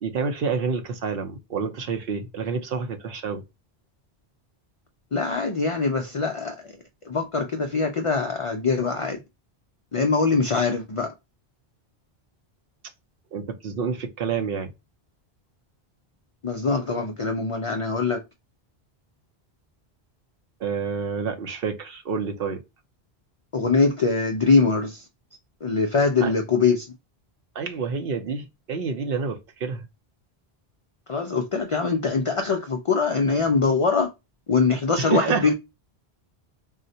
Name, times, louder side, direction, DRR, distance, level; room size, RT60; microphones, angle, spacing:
voice 1, 0.0-3.4 13.3-14.7 20.6-22.6 26.2-26.3 27.6-29.9 35.0-35.5, right 5 dB, 65° right, 0.8 m, -28 dB
voice 2, 5.1-6.6 7.1-9.2 9.9-11.1 16.4-18.2 23.5-25.1 25.6-26.9 31.1-34.1 34.5-35.5, left 4 dB, 60° left, 0.3 m, -23 dB
3.8 x 2.1 x 2.6 m
omnidirectional pair, 1.1 m